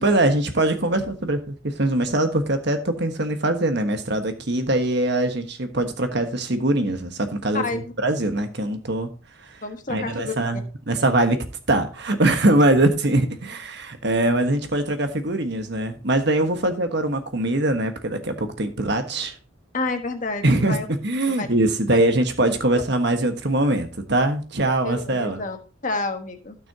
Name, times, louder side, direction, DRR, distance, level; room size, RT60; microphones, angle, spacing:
voice 1, 0.0-9.1 9.4-9.6 9.9-19.3 20.4-25.4, right 1 dB, 50° right, 7 dB, 1.4 m, -22 dB
voice 2, 7.5-7.9 9.6-10.3 19.7-20.8 21.4-21.5 22.7-22.8 24.8-25.6 25.8-26.6, left 3 dB, 35° left, 5 dB, 1.4 m, -29 dB
16.0 x 6.2 x 2.8 m, 0.35 s
head